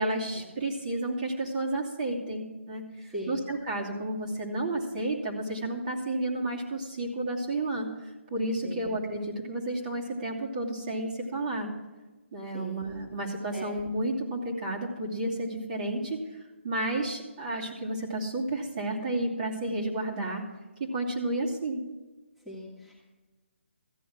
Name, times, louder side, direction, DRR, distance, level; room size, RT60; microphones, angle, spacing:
voice 1, 0.0-7.9 8.3-11.7 12.3-16.2 16.6-20.4 20.9-21.8, right 1 dB, 40° right, -3 dB, 2.9 m, -31 dB
voice 2, 22.5-23.0, equal, ahead, -5 dB, 2.1 m, -39 dB
14.5 x 9.4 x 6.1 m, 1.2 s
figure-of-eight pair, 145°, 7 cm